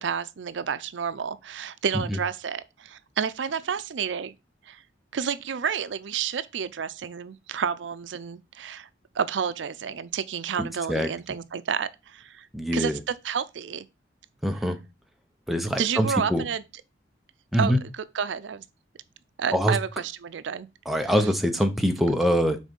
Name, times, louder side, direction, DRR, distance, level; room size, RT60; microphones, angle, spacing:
voice 1, 0.0-4.3 4.7-4.8 5.1-8.9 9.1-12.5 12.7-13.9 15.8-16.6 17.6-18.6 19.4-20.7 21.0-21.1, right 7 dB, 80° right, 0.5 m, -30 dB
voice 2, 10.6-11.1 12.5-13.0 14.4-14.8 15.5-16.5 17.5-17.8 19.5-19.8 20.9-22.6, equal, ahead, 0.7 m, -24 dB
6.2 x 4.1 x 5.3 m
head